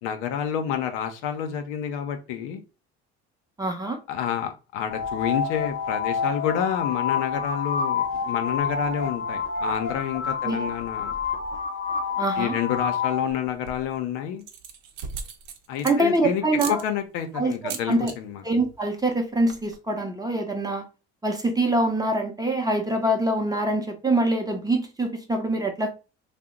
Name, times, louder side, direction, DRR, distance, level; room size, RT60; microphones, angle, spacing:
voice 1, 0.0-2.6 4.1-11.2 12.4-14.4 15.7-16.4 16.7-18.4, left 9 dB, 85° left, 0.6 m, -29 dB
voice 2, 3.6-4.0 10.4-10.6 12.2-12.6 15.8-16.8 17.3-18.1 18.4-20.8 21.2-25.9, right 1 dB, 10° right, 0.6 m, -24 dB
sound 1, 4.9-13.3, left 5 dB, 40° left, 0.8 m, -28 dB
sound 2, 13.4-13.9 14.4-16.2 16.6-16.8 17.5-18.2 18.4-18.8 19.0-19.1 19.3-19.7, right 6 dB, 70° right, 0.7 m, -37 dB
2.8 x 2.1 x 3.6 m
supercardioid pair, 80°, 34 cm